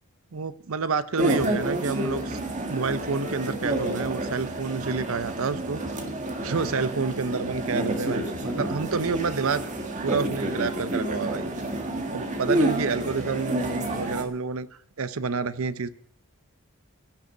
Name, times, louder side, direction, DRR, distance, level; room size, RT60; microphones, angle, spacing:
voice 1, 0.3-2.4 2.7-6.0 6.4-9.7 10.0-11.5 12.1-14.7 15.0-15.9, right 4 dB, 75° right, 0.7 m, -29 dB
sound 1, 1.2-14.2, right 1 dB, 35° right, 1.8 m, -29 dB
16.0 x 6.6 x 9.1 m
head